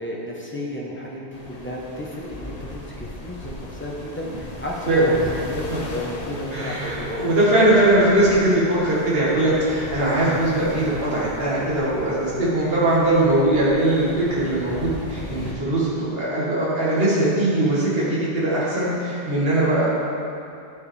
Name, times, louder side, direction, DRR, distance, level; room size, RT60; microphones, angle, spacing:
voice 1, 0.0-5.6 5.9-7.2, left 1 dB, 10° left, -4 dB, 1.1 m, -32 dB
sound 1, 1.3-15.5, left 2 dB, 40° left, 0.8 m, -38 dB
voice 2, 6.5-19.9, right 1 dB, 55° right, -8 dB, 2.0 m, -20 dB
12.5 x 4.9 x 3.5 m, 2.5 s
omnidirectional pair, 1.2 m